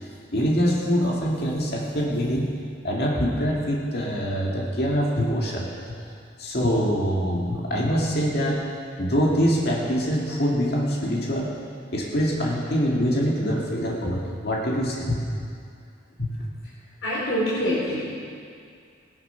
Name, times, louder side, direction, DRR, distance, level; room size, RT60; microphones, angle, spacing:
voice 1, 0.3-2.5 2.8-5.7 6.4-8.7 9.0-11.5 11.9-15.2 16.2-16.3, equal, 50° left, -3 dB, 2.3 m, -24 dB
voice 2, 17.0-18.2, equal, 85° left, -9 dB, 4.1 m, -25 dB
16.0 x 10.5 x 5.8 m, 2.3 s
head